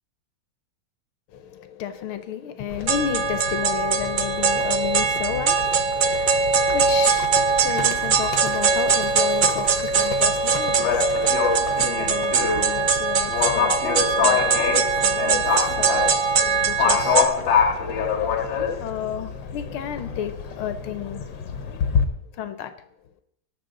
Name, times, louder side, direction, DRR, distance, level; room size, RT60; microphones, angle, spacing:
voice 1, 1.3-17.5 18.8-21.2 22.3-22.7, left 9 dB, 80° left, 1.8 m, -33 dB
Livestock farm animals working animals, 2.7-22.0, left 6 dB, 65° left, 1.7 m, -27 dB
sound 1, 2.9-17.3, right 5 dB, 55° right, 1.0 m, -22 dB
19.0 x 6.6 x 3.9 m
omnidirectional pair, 2.3 m